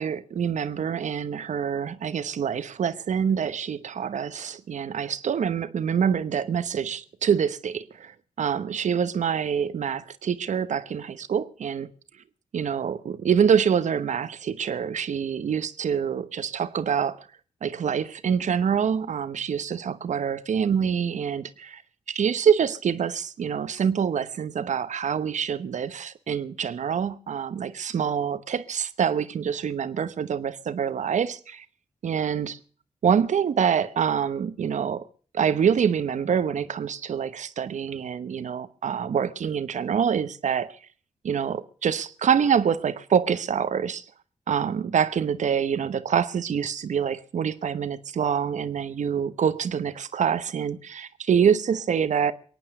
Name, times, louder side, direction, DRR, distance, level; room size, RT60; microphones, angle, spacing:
voice 1, 0.0-11.9 12.5-17.3 17.6-21.8 22.1-31.6 32.0-32.6 33.0-35.1 35.3-40.7 41.2-44.0 44.5-52.3, right 7 dB, 70° right, 0.9 m, -26 dB
22.5 x 9.0 x 6.5 m
supercardioid pair, 45°, 13 cm